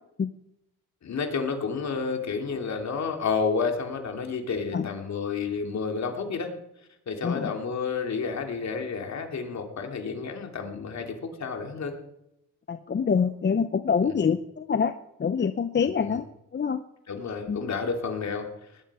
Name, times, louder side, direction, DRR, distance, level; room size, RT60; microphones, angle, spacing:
voice 1, 1.0-6.5 7.1-12.0 14.1-14.2 16.0-16.2 17.1-18.5, left 5 dB, 50° left, 4 dB, 3.2 m, -30 dB
voice 2, 12.7-14.9 15.2-16.3 16.5-16.8 17.5-17.6, left 6 dB, 30° left, 9 dB, 0.9 m, -25 dB
19.0 x 12.0 x 5.0 m, 0.83 s
supercardioid pair, 75°, 35 cm